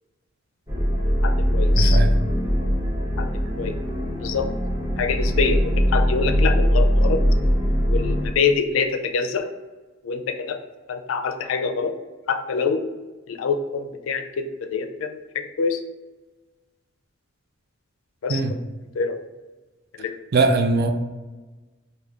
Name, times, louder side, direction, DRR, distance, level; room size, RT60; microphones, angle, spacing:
sound 1, 0.7-8.3, equal, 15° right, 0.7 m, -21 dB
voice 1, 1.2-2.0 2.4-2.5 3.2-3.3 3.6-3.8 4.2-4.5 5.0-7.2 7.9-9.5 10.0-10.6 10.9-11.9 12.3-12.8 13.3-15.8 18.2-18.4 18.9-19.2 20.0-20.1, left 5 dB, 80° left, 6 dB, 0.4 m, -25 dB
voice 2, 1.8-2.1 18.3-18.5 20.3-20.9, right 3 dB, 50° right, 6 dB, 0.4 m, -20 dB
3.3 x 2.2 x 3.6 m, 1.2 s
head